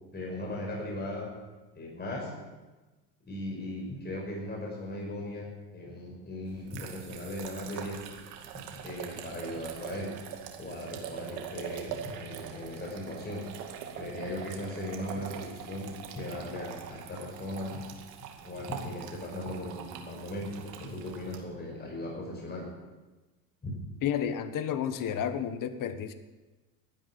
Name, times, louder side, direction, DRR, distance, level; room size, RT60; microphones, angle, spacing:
voice 1, 0.1-1.3 1.7-2.3 3.2-5.5 5.7-8.0 8.5-10.1 10.6-13.4 13.9-17.8 18.4-22.7 23.6-23.8, left 1 dB, 20° left, -1 dB, 5.3 m, -38 dB
sound 1, 6.5-21.4, right 9 dB, 75° right, 2.3 m, -43 dB
voice 2, 24.0-26.1, left 8 dB, 40° left, 11 dB, 1.4 m, -31 dB
12.5 x 9.9 x 8.6 m, 1.2 s
supercardioid pair, 100°, 49 cm